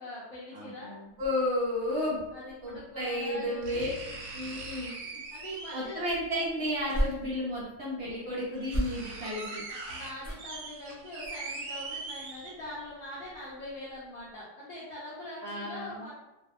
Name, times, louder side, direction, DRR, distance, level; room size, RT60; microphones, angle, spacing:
voice 1, 0.0-0.9 1.9-2.0 2.3-3.9 4.9-6.0 8.5-8.6 9.7-16.1, left 1 dB, 65° left, -8 dB, 0.9 m, -43 dB
voice 2, 0.5-2.2 2.6-3.9 4.3-4.9 5.7-9.6 15.4-16.0, left 1 dB, 60° right, -6 dB, 0.7 m, -32 dB
sound 1, 1.2-1.3 2.8-2.9 3.6-6.0 7.4-7.5 8.1-8.2 8.4-12.9 13.3-13.4, right 3 dB, 80° right, 1.2 m, -41 dB
sound 2, 6.1-7.7 8.6-9.4 10.2-10.7 11.2-11.5 11.8-11.9, equal, 30° left, 0.7 m, -35 dB
2.7 x 2.0 x 2.3 m, 0.98 s
omnidirectional pair, 1.7 m